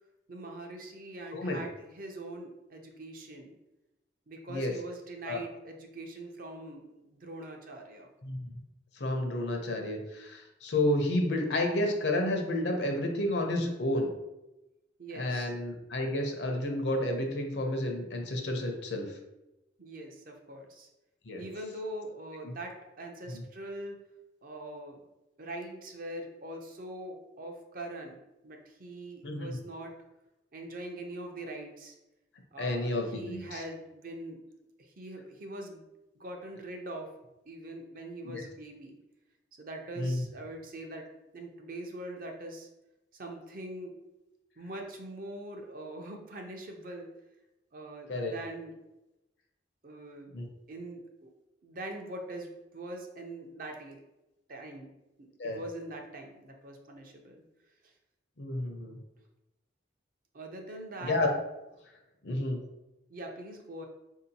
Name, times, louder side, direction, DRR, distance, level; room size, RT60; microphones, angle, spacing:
voice 1, 0.3-3.6 4.3-8.1 15.0-15.5 19.8-20.9 21.4-24.0 24.4-25.0 25.4-28.2 28.4-29.9 30.5-32.0 32.5-34.4 34.8-35.8 36.1-37.1 37.5-39.0 39.6-41.1 41.3-42.7 43.1-43.9 44.6-47.1 47.7-48.7 49.8-50.4 50.7-51.3 51.6-54.0 54.5-54.9 55.2-57.4 57.8-57.9 60.3-61.2 63.1-63.9, right 1 dB, 50° right, 2 dB, 0.5 m, -42 dB
voice 2, 8.2-8.6 9.0-14.1 15.1-19.1 21.3-21.4 22.4-22.5 23.3-23.4 29.2-29.5 32.6-33.6 38.2-38.4 40.0-40.2 48.1-48.3 50.3-50.5 55.4-55.6 58.4-59.0 61.0-61.3 62.2-62.6, left 1 dB, 70° left, 2 dB, 0.7 m, -31 dB
4.3 x 2.8 x 2.7 m, 0.96 s
head